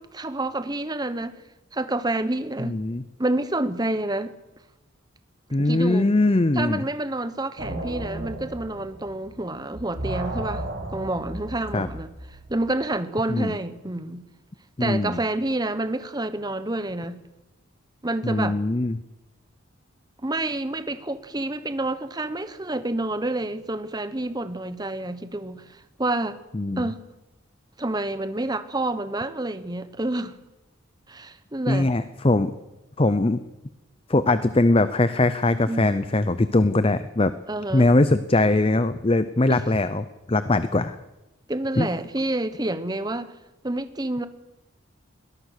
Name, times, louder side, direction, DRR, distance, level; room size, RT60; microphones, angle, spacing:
voice 1, 0.0-1.4 1.7-2.8 3.2-4.3 5.6-6.1 6.5-12.1 12.5-14.3 14.8-17.2 18.0-18.6 20.2-26.4 26.7-27.0 27.8-30.4 31.1-31.9 35.7-36.1 37.5-37.9 39.5-39.6 41.5-43.3 43.6-44.3, right 2 dB, 20° right, 1.1 m, -28 dB
voice 2, 2.6-3.0 5.5-6.8 11.7-11.9 13.3-13.5 14.8-15.2 18.2-19.0 26.5-26.9 31.7-32.5 33.0-33.4 34.1-37.3 37.7-41.0 41.8-41.9, left 2 dB, 30° left, 0.7 m, -21 dB
sound 1, 7.6-9.5 9.7-12.7, right 1 dB, 60° right, 4.3 m, -34 dB
22.0 x 18.0 x 6.7 m
head